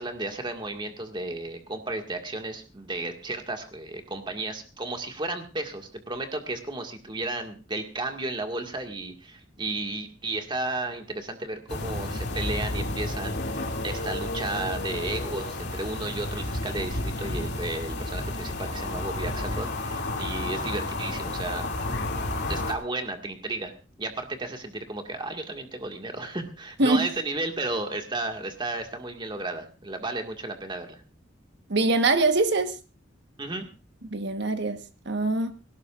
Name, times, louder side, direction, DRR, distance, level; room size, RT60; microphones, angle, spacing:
voice 1, 0.0-22.1 22.5-23.7 24.0-31.0 33.4-33.7, right 2 dB, 25° right, 4 dB, 2.0 m, -33 dB
sound 1, 11.7-22.7, left 2 dB, 60° left, 2.7 m, -31 dB
voice 2, 31.7-32.7 34.1-34.8 35.0-35.5, right 2 dB, 65° right, 7 dB, 1.4 m, -23 dB
20.0 x 18.0 x 2.5 m, 0.32 s
head